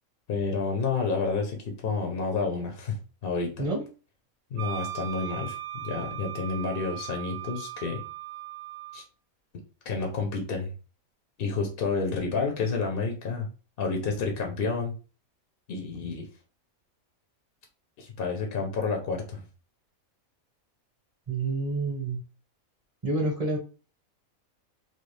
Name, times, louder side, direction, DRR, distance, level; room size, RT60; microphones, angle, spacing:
voice 1, 0.3-3.7 4.5-8.0 8.9-9.0 9.8-10.7 11.4-13.5 13.8-14.9 15.7-16.3 18.0-19.4, left 4 dB, 55° left, 2 dB, 0.7 m, -30 dB
Wind instrument woodwind instrument, 4.6-9.1, right 14 dB, 60° right, 0.7 m, -38 dB
voice 2, 21.3-22.2 23.0-23.6, right 2 dB, 30° right, 0 dB, 0.9 m, -28 dB
3.1 x 2.3 x 3.1 m, 0.35 s
omnidirectional pair, 1.5 m